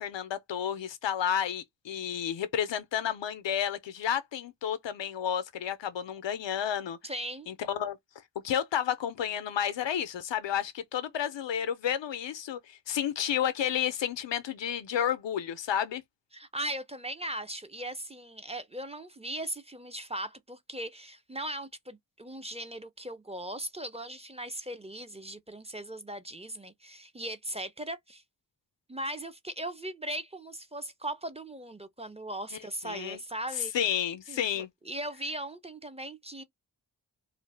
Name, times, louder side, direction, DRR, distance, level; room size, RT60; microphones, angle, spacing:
voice 1, 0.0-7.0 7.5-8.0 8.4-16.0 32.8-33.2 33.7-34.7, left 9 dB, 90° left, 0.5 m, -31 dB
voice 2, 7.0-7.5 16.3-28.2 28.9-33.7 34.3-36.4, right 1 dB, 15° right, 0.4 m, -38 dB
2.5 x 2.1 x 3.2 m
cardioid pair, 45°, 43 cm